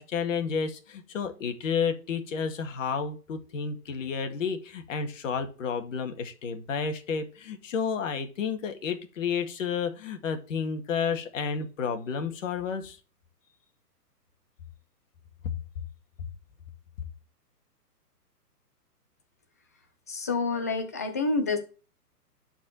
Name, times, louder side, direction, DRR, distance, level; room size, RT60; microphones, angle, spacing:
voice 1, 0.0-13.0, left 6 dB, 50° left, 7 dB, 2.1 m, -31 dB
voice 2, 20.1-21.6, left 3 dB, 10° left, 8 dB, 0.4 m, -28 dB
10.5 x 4.6 x 7.6 m, 0.36 s
hypercardioid pair, 135°, 48 cm